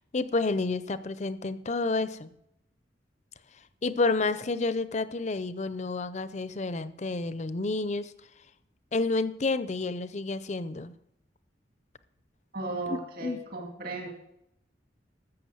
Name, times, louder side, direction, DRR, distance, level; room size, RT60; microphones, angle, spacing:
voice 1, 0.1-2.3 3.8-8.1 8.9-10.9 12.9-13.4, left 3 dB, 40° left, 14 dB, 0.6 m, -30 dB
voice 2, 12.5-14.1, right 2 dB, 50° right, 1 dB, 2.2 m, -35 dB
13.5 x 6.9 x 7.7 m, 0.81 s
head